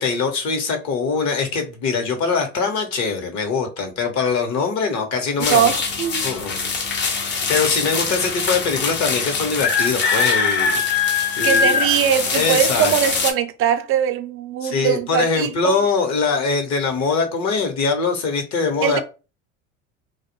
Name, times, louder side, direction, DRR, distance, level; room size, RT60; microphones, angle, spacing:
voice 1, 0.0-5.7 6.2-6.6 7.1-10.8 11.4-11.8 12.3-12.9 14.6-19.0, left 4 dB, 45° left, 1.0 m, -22 dB
sound 1, 5.4-13.3, left 5 dB, 30° left, 0.6 m, -22 dB
voice 2, 5.5-6.2 11.4-15.8 18.8-19.0, right 9 dB, 35° right, 0.4 m, -21 dB
2.4 x 2.1 x 2.8 m
hypercardioid pair, 80°, 40 cm